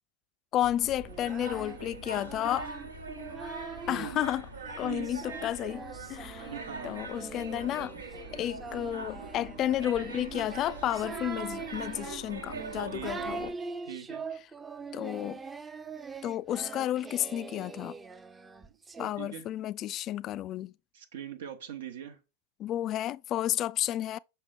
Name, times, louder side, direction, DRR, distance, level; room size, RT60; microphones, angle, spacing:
voice 1, 0.5-2.7 3.9-4.5 4.8-6.5 6.8-8.0 8.3-13.5 14.9-15.4 16.2-18.0 19.0-20.7 22.6-24.2, left 12 dB, 35° left, 0.3 m, -32 dB
sound 1, 0.6-13.5, right 3 dB, 75° right, 1.4 m, -42 dB
Singing, 1.1-4.1 4.6-19.1, right 4 dB, 15° right, 0.6 m, -42 dB
voice 2, 3.9-4.2 4.8-5.1 6.5-7.0 12.9-13.3 13.9-14.2 19.2-19.4 20.9-22.2, right 9 dB, 60° right, 1.0 m, -41 dB
7.2 x 5.7 x 3.4 m
figure-of-eight pair, 90°, 0 cm